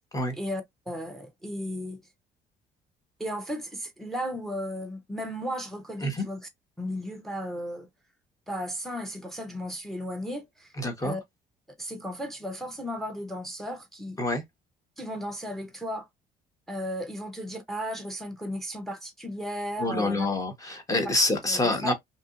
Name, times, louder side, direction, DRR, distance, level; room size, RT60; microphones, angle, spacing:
voice 1, 0.3-2.0 3.2-6.5 6.8-7.9 8.5-10.7 11.0-11.2 11.8-14.2 15.0-16.1 16.7-20.3 21.5-21.9, equal, ahead, 0.7 m, -35 dB
voice 2, 10.8-11.1 14.2-14.4 19.8-21.9, left 2 dB, 20° left, 1.0 m, -27 dB
2.7 x 2.5 x 2.4 m
cardioid pair, 110°, 17 cm